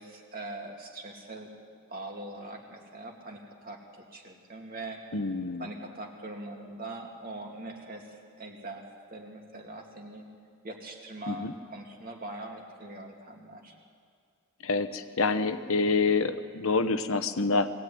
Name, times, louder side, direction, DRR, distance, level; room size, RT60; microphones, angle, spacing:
voice 1, 0.0-1.5 1.9-5.1 5.6-8.8 9.1-10.2 10.6-13.8, right 2 dB, 40° right, 1 dB, 2.8 m, -42 dB
voice 2, 5.1-5.7 11.3-11.5 14.6-17.7, left 3 dB, 65° left, 9 dB, 1.0 m, -27 dB
22.5 x 17.0 x 9.5 m, 2.2 s
head